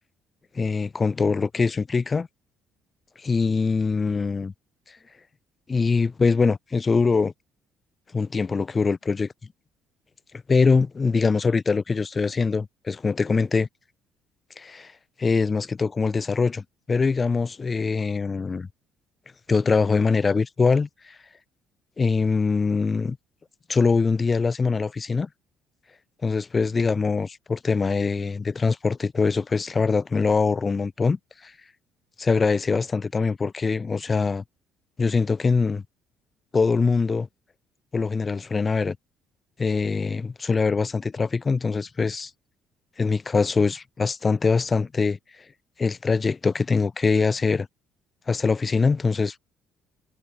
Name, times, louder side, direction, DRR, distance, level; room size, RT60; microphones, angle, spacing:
voice 1, 0.5-2.3 3.2-4.5 5.7-7.3 8.1-9.3 10.5-13.7 14.6-14.9 15.2-18.7 19.5-21.2 22.0-23.2 23.7-25.3 26.2-31.5 32.2-34.4 35.0-35.8 36.5-37.3 37.9-39.0 39.6-42.3 43.0-45.2 45.8-47.7 48.3-49.4, left 4 dB, 35° left, 0.4 m, -23 dB
hypercardioid pair, 60°, 0 cm